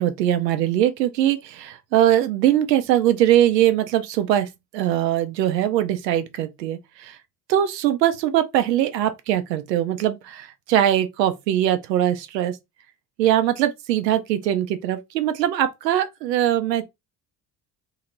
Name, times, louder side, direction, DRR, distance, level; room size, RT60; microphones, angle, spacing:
voice 1, 0.0-7.2 7.5-12.6 13.2-16.8, right 12 dB, 90° right, 0.7 m, -21 dB
2.9 x 2.6 x 4.3 m
hypercardioid pair, 65°, 48 cm